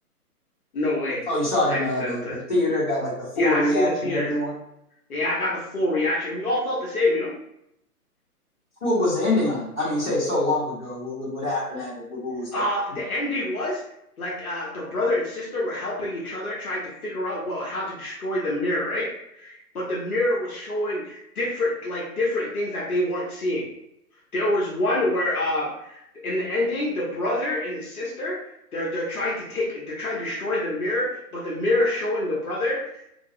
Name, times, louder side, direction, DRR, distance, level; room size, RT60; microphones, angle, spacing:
voice 1, 0.7-1.2 1.7-2.4 3.4-4.3 5.1-7.3 12.5-13.8 14.2-23.6 24.3-28.4 28.7-32.9, left 1 dB, 70° left, -4 dB, 0.9 m, -26 dB
voice 2, 1.3-4.5 8.8-12.6, left 1 dB, 30° left, -11 dB, 1.1 m, -25 dB
2.3 x 2.0 x 2.6 m, 0.78 s
hypercardioid pair, 180°, 46 cm